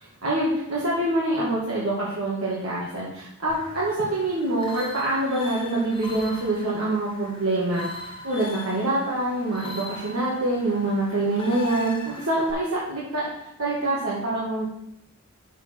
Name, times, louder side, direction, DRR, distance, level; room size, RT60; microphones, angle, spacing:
voice 1, 0.2-13.3 13.6-14.7, right 2 dB, 80° right, -6 dB, 1.9 m, -25 dB
sound 1, 3.5-12.5, left 2 dB, 25° left, 1.1 m, -41 dB
6.8 x 4.8 x 6.0 m, 0.78 s
head